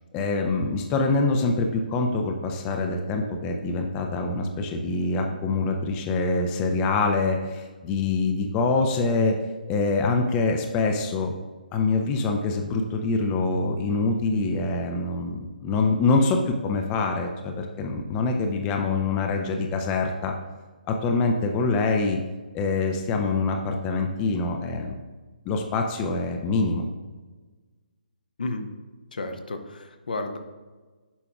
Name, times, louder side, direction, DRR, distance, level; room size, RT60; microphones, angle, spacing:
voice 1, 0.1-9.4 9.7-11.3 11.7-20.3 20.9-22.2 22.5-25.0 25.5-26.9, left 3 dB, 20° left, 3 dB, 0.5 m, -25 dB
voice 2, 29.1-30.4, left 2 dB, 65° left, 6 dB, 0.8 m, -32 dB
8.5 x 5.8 x 2.3 m, 1.3 s
figure-of-eight pair, 135°, 5 cm